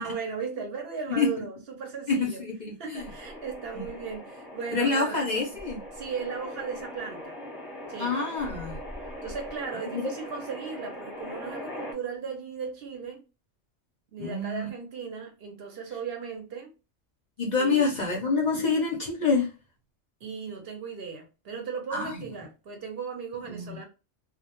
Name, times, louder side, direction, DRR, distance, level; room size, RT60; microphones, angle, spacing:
voice 1, 0.0-2.4 2.8-5.2 5.9-7.4 7.9-8.2 9.2-13.2 14.1-16.7 17.6-18.0 20.2-23.9, right 5 dB, 60° right, 0.8 m, -37 dB
voice 2, 2.1-3.1 3.8-3.9 4.7-5.8 8.0-8.8 9.9-10.1 14.2-14.7 17.4-19.5 21.9-22.1 23.5-23.8, left 4 dB, 50° left, 0.6 m, -27 dB
sound 1, 2.9-11.9, equal, ahead, 0.7 m, -41 dB
2.1 x 2.1 x 2.8 m
omnidirectional pair, 1.2 m